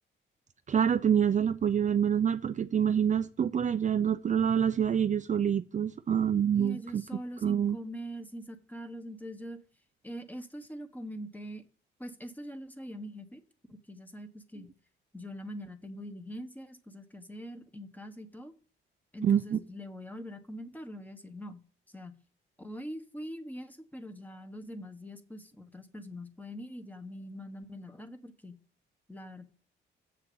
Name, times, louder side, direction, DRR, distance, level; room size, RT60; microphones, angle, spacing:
voice 1, 0.7-7.0 7.4-7.8 19.2-19.6, right 8 dB, 40° right, 0.6 m, -26 dB
voice 2, 6.5-9.6 10.0-11.6 12.0-13.4 13.7-14.7 15.1-18.5 19.1-21.6 21.9-22.1 22.6-28.6 29.1-29.4, equal, 10° left, 1.3 m, -43 dB
7.7 x 6.8 x 7.0 m
cardioid pair, 90°, 20 cm